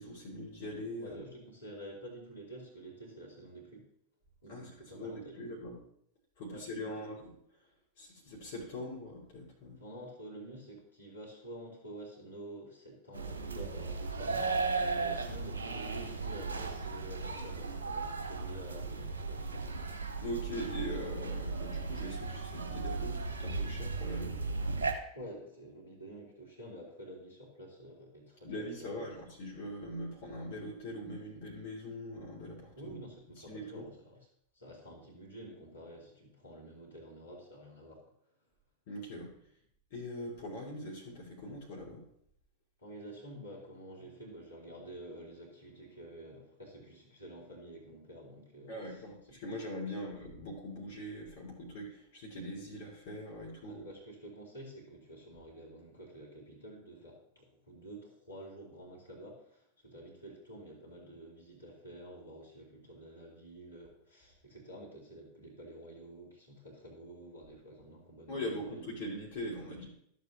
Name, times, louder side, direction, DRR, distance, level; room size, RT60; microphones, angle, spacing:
voice 1, 0.0-1.2 4.5-5.8 6.4-7.3 8.0-9.8 20.2-24.4 28.4-33.0 33.4-33.9 38.9-39.3 39.9-42.0 48.7-53.8 68.3-69.9, left 1 dB, 55° left, -4 dB, 2.5 m, -42 dB
voice 2, 1.0-3.8 4.4-5.5 6.5-7.2 9.8-19.7 25.1-29.1 32.7-34.3 34.5-38.0 42.8-49.6 49.9-50.0 53.6-68.9, right 1 dB, 80° left, -5 dB, 3.0 m, -49 dB
sound 1, 13.1-24.9, right 4 dB, 70° right, 1.3 m, -36 dB
13.5 x 7.4 x 2.8 m, 0.69 s
figure-of-eight pair, 90°, 0 cm